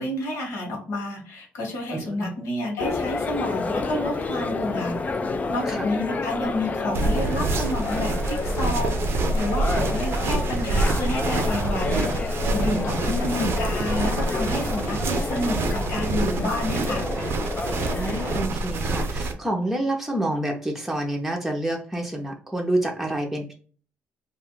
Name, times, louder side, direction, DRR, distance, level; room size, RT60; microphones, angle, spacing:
voice 1, 0.0-5.0 5.3-17.0, left 1 dB, 85° left, 0 dB, 1.4 m, -30 dB
voice 2, 1.9-2.3 5.6-5.9 12.7-13.6 18.0-23.5, right 1 dB, 5° right, 1 dB, 0.6 m, -28 dB
sound 1, 2.8-18.4, left 3 dB, 30° left, 0.4 m, -30 dB
sound 2, 6.9-19.3, right 2 dB, 60° right, 0.5 m, -26 dB
2.6 x 2.3 x 3.7 m, 0.41 s
cardioid pair, 100°, 5 cm